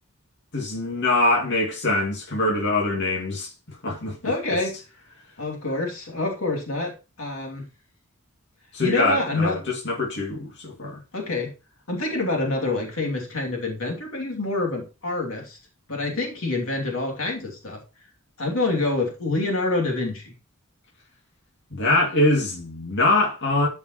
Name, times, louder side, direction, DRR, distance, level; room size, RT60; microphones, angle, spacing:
voice 1, 0.5-3.5 3.8-4.6 8.7-11.0 21.7-23.7, left 2 dB, 60° left, 2.5 m, -23 dB
voice 2, 4.2-4.8 5.4-7.7 8.8-9.6 11.1-11.5 11.9-15.6 15.9-17.8 18.4-20.3, left 2 dB, 75° left, 2.7 m, -26 dB
12.5 x 5.4 x 3.1 m
head